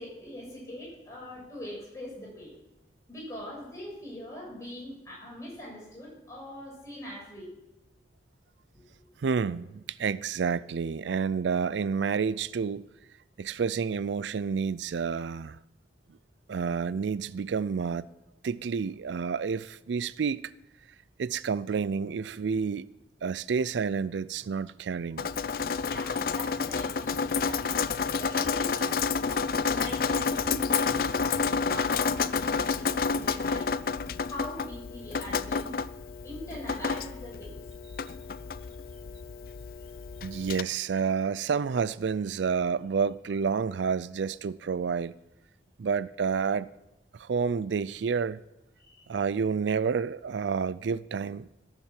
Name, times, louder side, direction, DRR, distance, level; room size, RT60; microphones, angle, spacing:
voice 1, 0.0-2.5 3.1-7.5 25.8-33.8 34.2-35.8 36.2-37.6 48.8-49.3, left 1 dB, 20° left, 6.3 m, -42 dB
voice 2, 9.2-12.8 13.4-15.6 16.5-18.1 18.4-20.4 21.2-22.9 23.2-25.3 40.2-45.1 45.8-46.7 47.1-48.4 49.1-51.5, right 6 dB, 90° right, 0.4 m, -29 dB
Drip, 25.2-40.6, left 5 dB, 55° left, 0.4 m, -30 dB
14.5 x 7.3 x 7.5 m
head